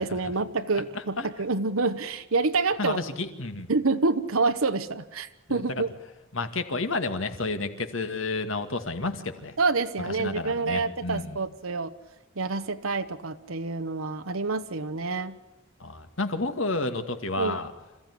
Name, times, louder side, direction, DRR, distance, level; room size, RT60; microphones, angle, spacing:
voice 1, 0.0-3.0 3.7-5.9 9.6-11.9 12.4-15.4 17.4-17.6, right 3 dB, 80° right, 8 dB, 1.1 m, -27 dB
voice 2, 2.8-3.7 5.5-5.6 6.3-9.5 10.0-11.4 15.8-17.7, left 3 dB, 70° left, 8 dB, 2.2 m, -30 dB
27.5 x 15.5 x 10.0 m, 1.1 s
head